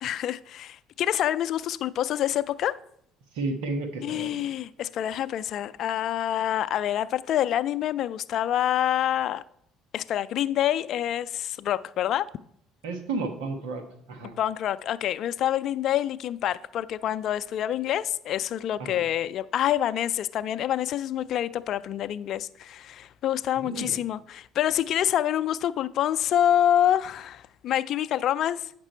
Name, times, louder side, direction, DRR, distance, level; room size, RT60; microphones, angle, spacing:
voice 1, 0.0-2.8 4.0-9.4 9.9-12.3 14.4-28.7, left 11 dB, 60° left, 0.4 m, -27 dB
voice 2, 3.3-4.5 12.8-13.8 14.1-14.3 18.8-19.0 23.6-24.0, right 3 dB, 85° right, 1.2 m, -32 dB
9.0 x 6.0 x 4.4 m
hypercardioid pair, 70°, 0 cm